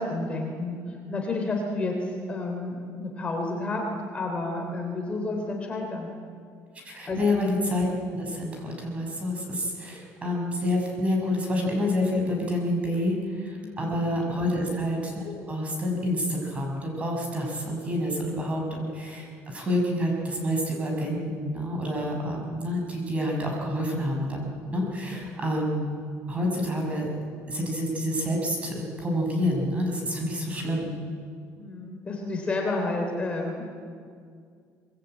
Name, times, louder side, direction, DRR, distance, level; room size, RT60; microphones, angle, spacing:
voice 1, 0.0-3.8 4.1-6.1 6.9-7.2 13.5-13.9 14.4-14.6 25.1-25.4 31.6-33.7, left 2 dB, 20° left, 1 dB, 3.2 m, -31 dB
voice 2, 6.8-26.0 26.3-27.1 27.5-31.0, left 1 dB, 20° right, 1 dB, 6.0 m, -28 dB
24.5 x 22.0 x 8.9 m, 2.2 s
cardioid pair, 170°, 6 cm